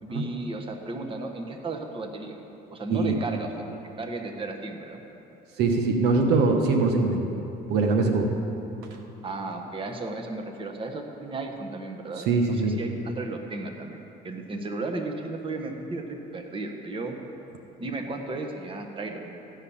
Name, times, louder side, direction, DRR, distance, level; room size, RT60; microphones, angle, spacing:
voice 1, 0.0-2.4 2.7-3.5 4.0-5.0 9.2-17.2 17.8-19.4, right 2 dB, 30° right, 3 dB, 1.3 m, -34 dB
voice 2, 5.6-7.3 7.7-8.3 8.8-9.0 12.2-12.8, right 3 dB, 80° right, 4 dB, 1.2 m, -23 dB
14.5 x 5.7 x 8.6 m, 3.0 s
cardioid pair, 110°, 17 cm